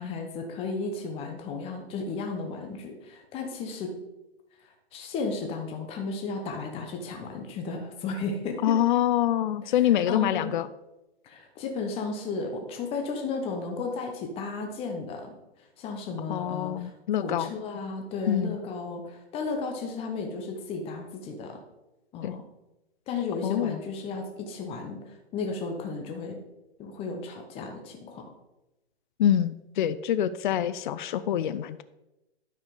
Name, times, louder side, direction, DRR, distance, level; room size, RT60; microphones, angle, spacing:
voice 1, 0.0-3.9 4.6-8.8 9.6-10.5 11.2-15.3 15.8-16.9 17.2-21.6 22.1-22.4 23.1-26.4 26.8-28.3, left 4 dB, 15° left, 3 dB, 1.0 m, -34 dB
voice 2, 8.6-10.7 16.3-17.5 18.3-18.6 22.2-22.4 23.4-23.8 29.2-31.8, left 11 dB, 50° left, 14 dB, 0.5 m, -25 dB
9.9 x 7.1 x 3.8 m, 0.97 s
hypercardioid pair, 135°, 33 cm